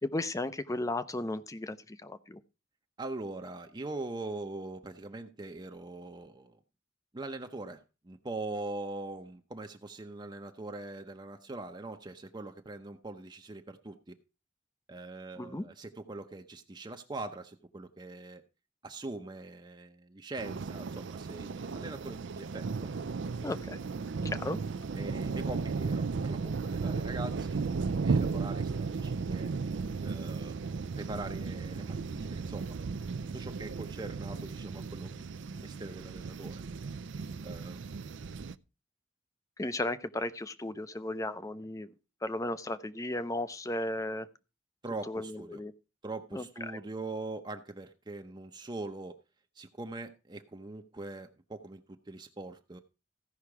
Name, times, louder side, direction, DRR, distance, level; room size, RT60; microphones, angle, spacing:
voice 1, 0.0-2.4 15.4-15.6 23.4-23.8 24.3-24.6 39.6-41.9 42.2-44.3 45.1-45.7 46.3-46.8, left 1 dB, 20° left, 0.6 m, -35 dB
voice 2, 3.0-6.6 7.1-14.2 14.9-18.4 18.8-22.9 25.0-29.5 30.0-32.7 33.3-35.2 35.5-36.6 37.4-37.8 44.8-45.6 46.0-49.2 49.6-52.8, right 2 dB, 25° right, 0.7 m, -42 dB
sound 1, 20.4-38.5, right 4 dB, 75° right, 0.5 m, -35 dB
15.0 x 5.7 x 4.8 m
head